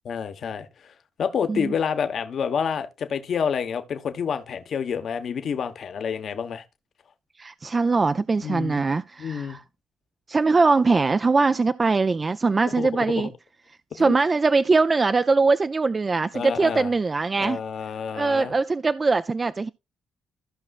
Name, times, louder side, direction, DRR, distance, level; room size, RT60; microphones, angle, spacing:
voice 1, 0.0-0.9 1.2-6.6 8.4-8.8 9.2-9.6 12.8-12.9 13.2-13.3 13.9-14.2 16.3-16.9 17.4-18.5, left 7 dB, 55° left, 1.1 m, -28 dB
voice 2, 7.4-9.6 10.3-13.3 13.9-17.6 18.1-19.7, right 3 dB, 30° right, 0.4 m, -22 dB
15.0 x 5.5 x 2.4 m
cardioid pair, 90°, 0 cm